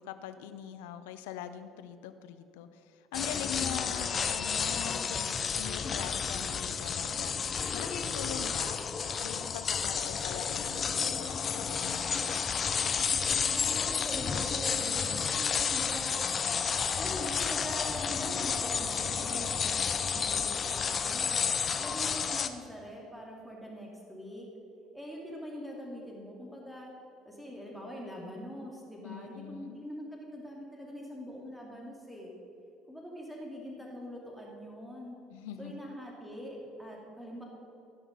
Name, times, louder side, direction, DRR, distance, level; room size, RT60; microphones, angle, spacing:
voice 1, 0.0-8.8 9.2-12.5 29.0-29.8 35.3-35.7, left 10 dB, 80° left, 10 dB, 0.6 m, -43 dB
sound 1, 3.1-22.5, left 6 dB, 40° left, 0.7 m, -31 dB
voice 2, 3.6-4.1 13.5-16.2 16.9-21.4 21.8-24.5 24.9-26.9 27.2-32.3 32.9-35.2 35.6-37.4, equal, ahead, -2 dB, 2.7 m, -43 dB
16.5 x 6.0 x 5.3 m, 2.6 s
hypercardioid pair, 60°, 0 cm